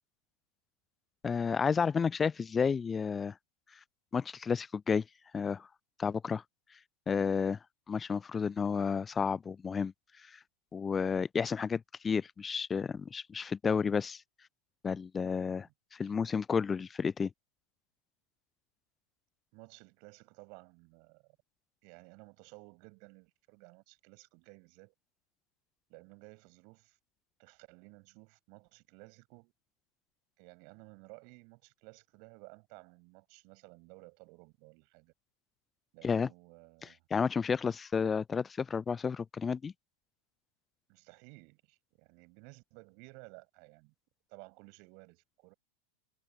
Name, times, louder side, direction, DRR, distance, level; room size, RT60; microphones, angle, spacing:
voice 1, 1.2-3.3 4.1-5.0 5.3-5.7 6.0-6.4 7.1-7.6 7.9-9.9 10.3-10.4 10.7-14.2 14.8-17.3 36.0-36.3 37.1-39.7, left 6 dB, 15° left, 0.4 m, -31 dB
voice 2, 19.5-21.4 21.8-24.9 25.9-27.0 27.4-29.5 30.4-35.1 35.9-37.1 40.9-43.9 44.3-45.5, right 35 dB, 45° right, 6.1 m, -56 dB
figure-of-eight pair, 90°, 0 cm